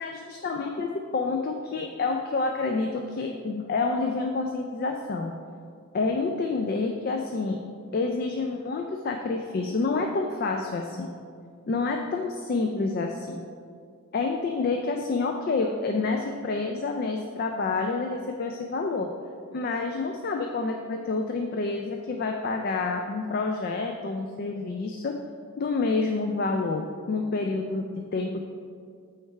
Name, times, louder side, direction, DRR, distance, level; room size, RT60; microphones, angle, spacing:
voice 1, 0.0-5.4 5.9-7.6 7.9-11.1 11.7-13.4 14.1-19.1 19.5-25.1 25.6-27.9 28.1-28.4, left 3 dB, 45° left, 3 dB, 0.3 m, -28 dB
7.9 x 3.2 x 4.6 m, 2.2 s
head